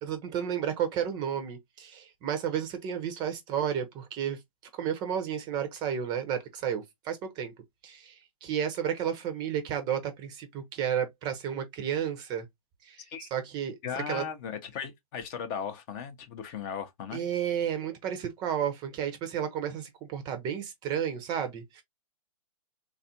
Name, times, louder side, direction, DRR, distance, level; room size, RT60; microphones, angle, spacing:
voice 1, 0.0-4.4 4.7-7.5 7.8-8.1 8.4-12.5 12.8-13.8 14.1-14.2 17.1-21.8, right 9 dB, 20° right, 0.5 m, -32 dB
voice 2, 13.8-17.3, left 7 dB, 30° left, 0.6 m, -37 dB
3.4 x 2.4 x 2.7 m
hypercardioid pair, 130°, 19 cm